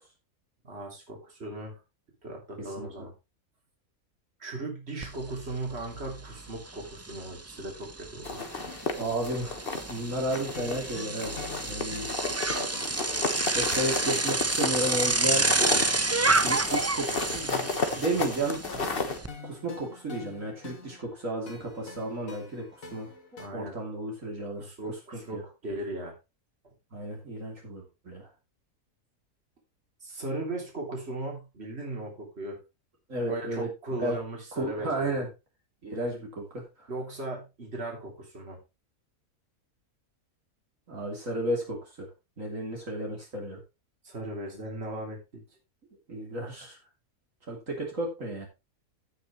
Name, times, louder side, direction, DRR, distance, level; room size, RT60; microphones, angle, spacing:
voice 1, 0.6-1.8 2.2-3.1 4.4-8.4 23.4-23.7 24.5-26.1 26.6-26.7 30.0-32.6 33.3-35.3 36.9-38.6 44.0-45.2, right 2 dB, 45° right, 0 dB, 3.4 m, -37 dB
Bicycle, 5.0-5.1 5.5-19.3, right 3 dB, 25° right, 0.3 m, -29 dB
sound 1, 8.2-10.0 10.3-10.9 11.2-19.2, left 3 dB, 40° left, 1.6 m, -33 dB
voice 2, 9.0-9.6 9.9-12.1 13.5-15.5 16.3-17.7 17.9-18.6 19.4-22.6 22.9-23.1 23.5-24.7 25.3-25.4 26.9-28.3 33.1-33.7 34.0-34.1 34.6-35.3 35.8-36.6 40.9-42.1 42.4-43.6 46.1-46.8 47.5-48.5, right 1 dB, 65° right, -1 dB, 3.3 m, -33 dB
sound 2, 10.6-23.5, left 4 dB, 70° left, 2.0 m, -46 dB
15.5 x 6.5 x 3.1 m, 0.26 s
omnidirectional pair, 1.5 m